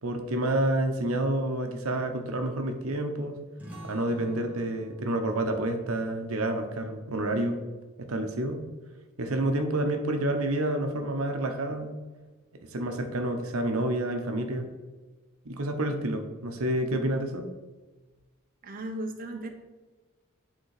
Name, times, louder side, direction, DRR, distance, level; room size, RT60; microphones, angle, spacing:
voice 1, 0.0-3.4 3.8-7.6 8.0-8.6 9.2-12.0 12.7-14.7 15.4-17.5, right 1 dB, 85° right, 5 dB, 0.9 m, -29 dB
sound 1, 3.6-8.8, equal, 5° right, 1.5 m, -49 dB
voice 2, 18.6-19.5, right 1 dB, 45° right, 3 dB, 0.8 m, -35 dB
8.8 x 3.8 x 4.8 m, 1.2 s
head